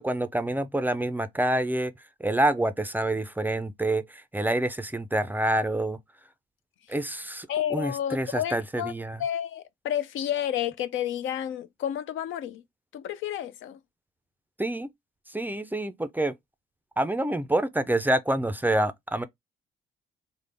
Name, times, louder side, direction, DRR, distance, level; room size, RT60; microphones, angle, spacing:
voice 1, 0.0-1.9 2.2-6.0 6.9-9.2 14.6-14.9 15.3-16.3 17.0-19.3, right 1 dB, 10° right, 0.4 m, -27 dB
voice 2, 7.5-8.9 9.2-12.6 12.9-13.8, left 10 dB, 80° left, 0.5 m, -30 dB
3.7 x 2.0 x 3.3 m
cardioid pair, 90°, 20 cm